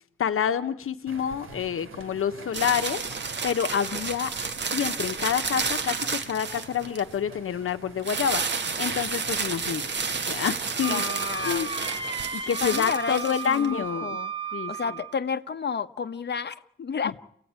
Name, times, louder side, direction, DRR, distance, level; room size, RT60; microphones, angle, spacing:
voice 1, 0.2-4.3 4.7-11.0 11.5-11.7 12.3-14.2 14.5-14.7, left 8 dB, 85° left, 1.1 m, -28 dB
sound 1, 1.1-12.3, right 4 dB, 90° right, 3.8 m, -47 dB
sound 2, 2.5-7.1 8.0-13.7, right 5 dB, 55° right, 2.1 m, -31 dB
Wind instrument woodwind instrument, 10.8-15.2, right 6 dB, 25° right, 1.6 m, -34 dB
voice 2, 10.9-11.7 12.6-14.3 14.7-17.2, left 6 dB, 55° left, 1.2 m, -31 dB
29.0 x 16.5 x 9.6 m
wide cardioid pair, 140°, 21 cm